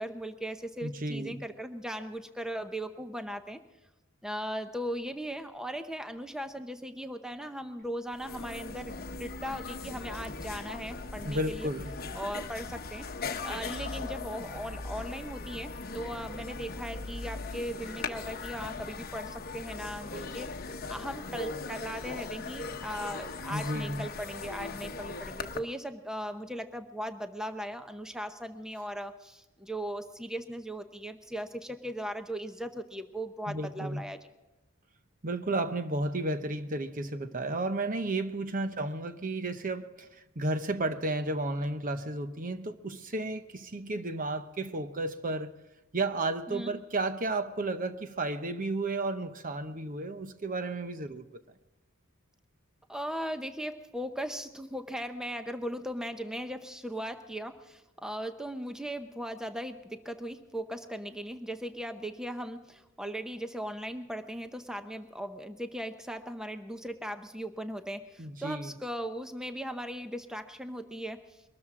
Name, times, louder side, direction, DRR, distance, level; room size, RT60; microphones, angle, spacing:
voice 1, 0.0-3.6 4.2-11.7 12.1-13.1 13.4-34.2 46.5-46.7 51.1-51.2 52.9-71.4, equal, 5° right, 0.7 m, -38 dB
voice 2, 0.8-1.4 11.2-12.0 23.5-24.1 33.5-34.1 35.2-45.5 45.9-51.4 68.2-68.7, right 2 dB, 40° right, 0.8 m, -33 dB
sound 1, 7.9-8.0 8.1-25.6, left 4 dB, 45° left, 1.0 m, -39 dB
22.5 x 13.5 x 3.7 m
head